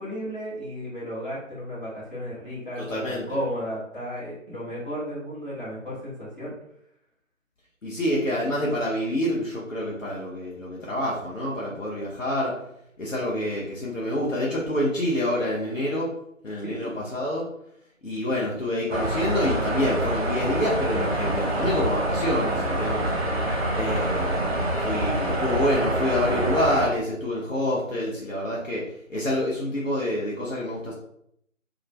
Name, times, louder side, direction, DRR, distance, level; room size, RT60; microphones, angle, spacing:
voice 1, 0.0-6.5 16.6-17.0, equal, 40° left, -8 dB, 1.4 m, -34 dB
voice 2, 2.8-3.4 7.8-12.6 13.0-16.1 16.4-17.5 18.0-23.1 23.7-24.5 24.8-30.9, left 1 dB, 70° left, -5 dB, 0.8 m, -27 dB
sound 1, 18.9-26.9, right 1 dB, 50° right, 0.6 m, -26 dB
2.4 x 2.1 x 3.2 m, 0.73 s
figure-of-eight pair, 165°, 40 cm